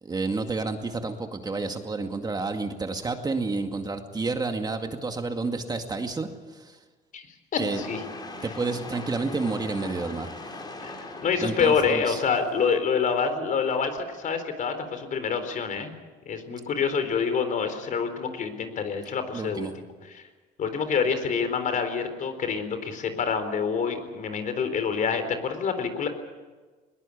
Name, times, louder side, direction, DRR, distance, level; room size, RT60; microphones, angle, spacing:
voice 1, 0.0-6.8 7.6-7.8 8.4-10.6 11.4-12.2 19.3-19.7, right 3 dB, 25° right, 5 dB, 2.2 m, -30 dB
voice 2, 7.5-8.0 10.8-15.9 16.3-20.2 20.6-26.1, left 6 dB, 50° left, 9 dB, 4.0 m, -27 dB
sound 1, 7.7-12.8, left 2 dB, 25° left, 5.0 m, -40 dB
21.0 x 21.0 x 8.6 m, 1.3 s
cardioid pair, 110°, 17 cm